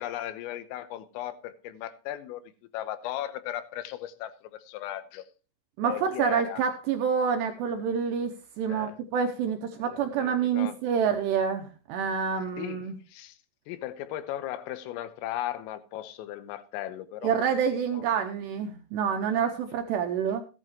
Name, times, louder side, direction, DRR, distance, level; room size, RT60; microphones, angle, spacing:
voice 1, 0.0-5.3 5.8-6.6 8.7-9.0 9.8-10.8 12.6-12.8 13.1-13.4 13.7-17.4 17.9-18.0, left 13 dB, 85° left, 3.6 m, -37 dB
voice 2, 5.8-13.0 17.2-20.4, right 7 dB, 80° right, 2.6 m, -27 dB
15.0 x 11.0 x 3.1 m
omnidirectional pair, 5.8 m